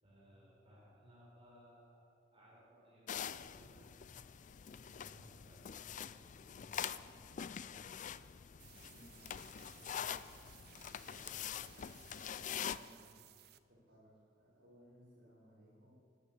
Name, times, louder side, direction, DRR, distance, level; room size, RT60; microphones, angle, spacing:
voice 1, 0.0-3.9 4.8-7.9 8.5-9.1 9.5-11.9 12.6-13.1, equal, 30° right, -6 dB, 4.8 m, -63 dB
sound 1, 3.1-12.8, left 8 dB, 45° left, 0.4 m, -45 dB
sound 2, 8.6-13.6, right 12 dB, 60° right, 0.6 m, -61 dB
voice 2, 8.9-9.3 12.8-13.2 13.7-15.9, equal, 80° right, -11 dB, 4.4 m, -63 dB
13.0 x 9.7 x 8.5 m, 2.3 s
head